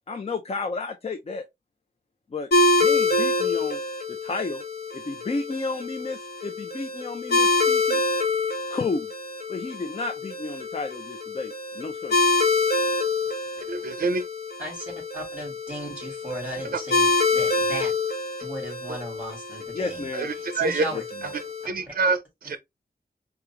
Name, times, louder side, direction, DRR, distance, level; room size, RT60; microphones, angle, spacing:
voice 1, 0.1-1.4 2.3-2.5 2.8-3.8 4.1-4.6 4.9-8.0 8.7-9.1 9.5-12.2 19.7-20.3 20.9-21.0, left 3 dB, 40° left, 0.5 m, -32 dB
sound 1, 2.5-21.7, left 2 dB, 75° left, 1.3 m, -26 dB
voice 2, 13.7-14.3 16.7-16.8 20.1-20.8 21.7-22.6, right 3 dB, 60° right, 0.5 m, -26 dB
voice 3, 15.1-17.9 18.4-20.1 20.3-21.3 21.7-21.9, right 1 dB, 10° right, 3.0 m, -36 dB
4.8 x 2.4 x 2.9 m
wide cardioid pair, 105°, 16 cm